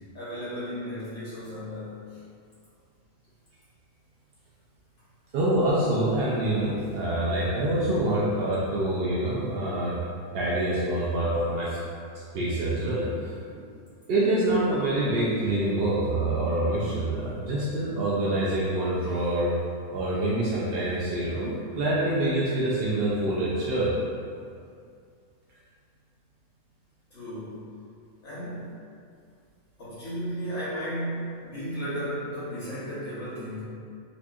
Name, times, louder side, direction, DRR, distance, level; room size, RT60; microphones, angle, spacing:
voice 1, 0.1-2.2 27.1-27.6 28.2-28.7 29.8-33.6, equal, 60° left, -12 dB, 1.4 m, -34 dB
voice 2, 5.3-10.0 10.3-11.8 12.3-13.3 14.1-19.5 19.9-23.9, right 1 dB, 80° right, -7 dB, 0.5 m, -26 dB
4.1 x 2.8 x 2.3 m, 2.3 s
omnidirectional pair, 1.6 m